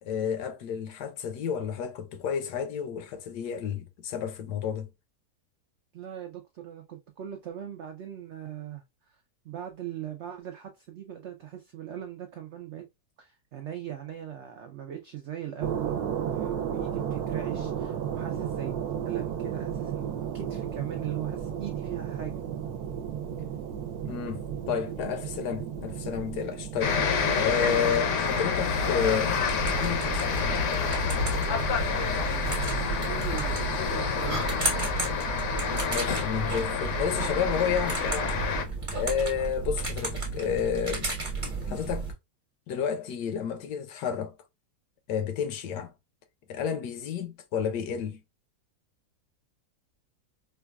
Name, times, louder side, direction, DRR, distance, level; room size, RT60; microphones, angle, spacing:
voice 1, 0.0-4.9 24.0-27.0 27.4-29.4 29.7-30.4 35.9-38.3 38.9-41.1 41.7-42.1 42.7-44.3 45.1-45.9 46.5-48.2, left 7 dB, 85° left, 1.2 m, -31 dB
voice 2, 5.9-9.2 9.4-12.8 13.2-18.8 19.0-22.4 32.6-34.5, right 10 dB, 90° right, 0.6 m, -39 dB
sound 1, 15.6-33.9, right 8 dB, 75° right, 1.1 m, -35 dB
sound 2, 26.8-38.7, left 5 dB, 65° left, 0.8 m, -28 dB
sound 3, 29.5-42.1, right 3 dB, 25° right, 0.8 m, -33 dB
4.6 x 2.3 x 2.2 m
omnidirectional pair, 1.8 m